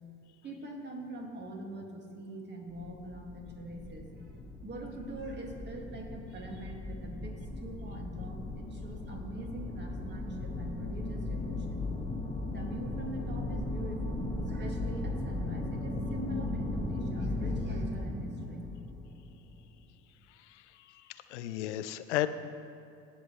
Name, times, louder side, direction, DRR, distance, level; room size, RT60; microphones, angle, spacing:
voice 1, 0.4-4.3 4.6-11.9 12.5-18.7, right 1 dB, 30° right, 1 dB, 2.0 m, -43 dB
sound 1, 2.7-19.7, left 2 dB, 10° left, 1.6 m, -37 dB
voice 2, 20.3-22.3, left 14 dB, 80° left, 12 dB, 0.6 m, -35 dB
17.5 x 7.3 x 3.1 m, 2.5 s
hypercardioid pair, 65°, 35 cm